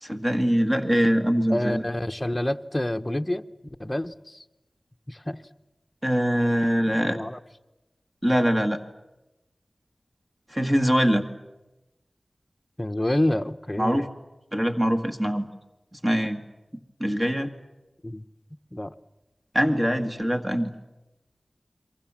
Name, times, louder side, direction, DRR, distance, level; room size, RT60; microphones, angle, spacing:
voice 1, 0.0-1.8 6.0-7.2 8.2-8.8 10.5-11.3 13.8-14.1 14.5-15.5 15.9-16.4 17.0-17.5 19.5-20.7, equal, 20° right, 6 dB, 1.8 m, -23 dB
voice 2, 1.5-3.4 3.8-4.4 5.1-5.4 6.9-7.4 12.8-14.1 18.0-18.2 18.7-18.9, left 1 dB, 20° left, 8 dB, 1.0 m, -28 dB
30.0 x 23.0 x 7.5 m, 1.0 s
wide cardioid pair, 65°, 0 cm